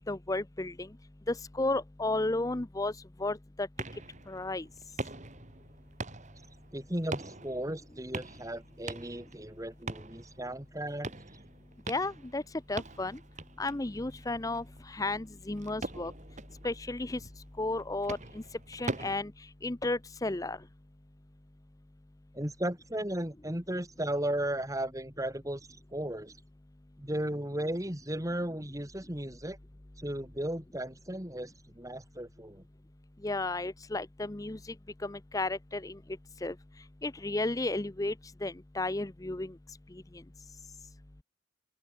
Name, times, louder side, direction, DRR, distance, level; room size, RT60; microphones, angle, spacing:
voice 1, 0.1-0.9 1.3-2.9 3.2-3.7 4.3-4.6 11.9-12.4 12.7-13.2 13.6-16.1 16.6-17.2 17.6-18.4 18.7-19.3 19.6-20.6 33.2-34.6 35.0-36.0 36.4-36.5 37.0-38.1 38.4-39.5, left 2 dB, 15° left, 0.6 m, -33 dB
sound 1, 3.8-19.2, right 2 dB, 35° right, 2.4 m, -43 dB
voice 2, 6.7-11.1 22.3-26.3 27.0-29.6 30.0-32.6, right 1 dB, 15° right, 2.8 m, -35 dB
open air
head